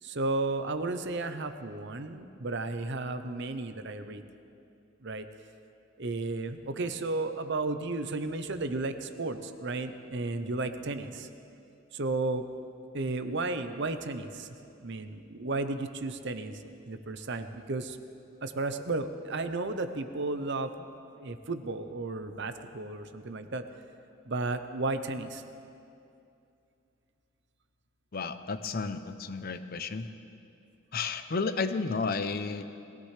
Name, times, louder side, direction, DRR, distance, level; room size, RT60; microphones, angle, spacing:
voice 1, 0.0-4.2 5.0-5.2 6.0-11.3 11.9-12.4 12.9-14.5 14.8-18.0 18.4-20.7 21.1-23.6 24.2-25.4, right 2 dB, 55° right, 9 dB, 0.7 m, -33 dB
voice 2, 28.1-30.1 30.9-32.6, left 4 dB, 45° left, 10 dB, 0.6 m, -32 dB
21.0 x 16.0 x 3.3 m, 2.6 s
head